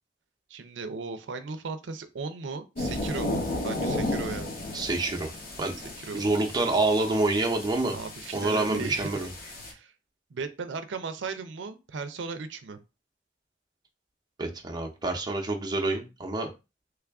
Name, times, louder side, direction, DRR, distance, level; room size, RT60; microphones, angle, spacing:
voice 1, 0.5-4.6 6.0-6.2 7.9-9.3 9.7-9.9 10.3-12.8, right 4 dB, 85° right, 9 dB, 0.5 m, -36 dB
sound 1, 2.8-9.7, left 1 dB, 55° left, 0.9 m, -34 dB
voice 2, 4.7-5.3 5.6-5.7 6.1-8.0 8.3-9.3 14.4-16.5, right 2 dB, 25° right, 2 dB, 0.6 m, -27 dB
3.3 x 2.4 x 3.4 m, 0.27 s
head